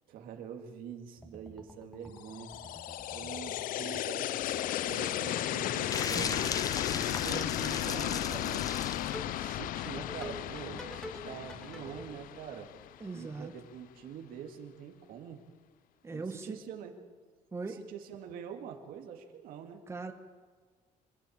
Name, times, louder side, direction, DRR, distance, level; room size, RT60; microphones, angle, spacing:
voice 1, 0.1-2.5 3.1-6.6 6.9-8.8 9.3-12.7 13.1-15.4 16.1-17.0 17.7-19.8, right 8 dB, 85° right, 4 dB, 2.2 m, -45 dB
sound 1, 1.2-12.1, equal, 5° left, 1.6 m, -50 dB
sound 2, 2.2-13.2, left 13 dB, 75° left, 0.6 m, -35 dB
sound 3, 5.9-9.1, left 5 dB, 25° left, 0.7 m, -37 dB
voice 2, 13.0-13.5 16.0-16.6 17.5-17.8 19.9-20.1, right 3 dB, 20° right, 6 dB, 1.3 m, -39 dB
25.5 x 11.5 x 8.7 m, 1.5 s
cardioid pair, 150°, 14 cm